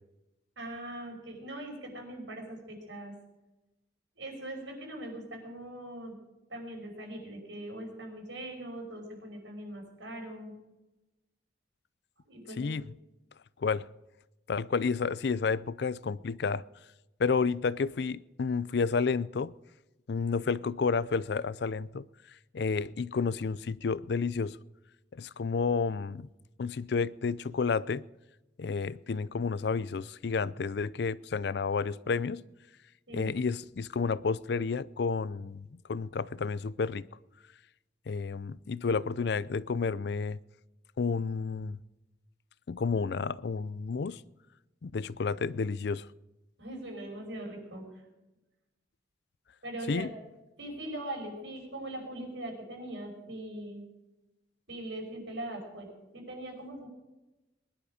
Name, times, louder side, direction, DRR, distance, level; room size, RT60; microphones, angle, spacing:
voice 1, 0.6-3.1 4.2-6.1 6.5-10.5 12.3-12.7 33.1-33.3 46.6-48.0 49.6-50.1 50.6-53.8 54.7-55.9 56.1-56.9, right 1 dB, 80° right, 5.5 m, -41 dB
voice 2, 12.6-12.9 13.6-13.9 14.5-16.6 17.2-19.5 20.1-22.0 22.5-24.6 25.1-26.3 26.6-28.0 28.6-32.4 33.1-37.1 38.1-40.4 41.0-41.8 42.7-44.2 44.8-46.1 49.9-50.1, left 5 dB, 60° left, 0.4 m, -31 dB
21.0 x 11.0 x 5.1 m
head